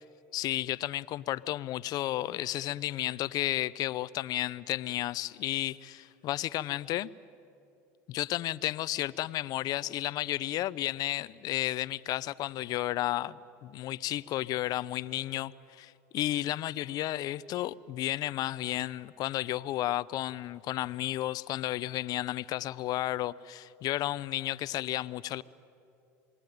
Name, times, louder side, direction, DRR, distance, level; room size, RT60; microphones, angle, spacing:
voice 1, 0.3-7.1 8.1-25.4, left 15 dB, 50° left, 0.7 m, -32 dB
27.5 x 20.5 x 9.4 m
hypercardioid pair, 90°, 8 cm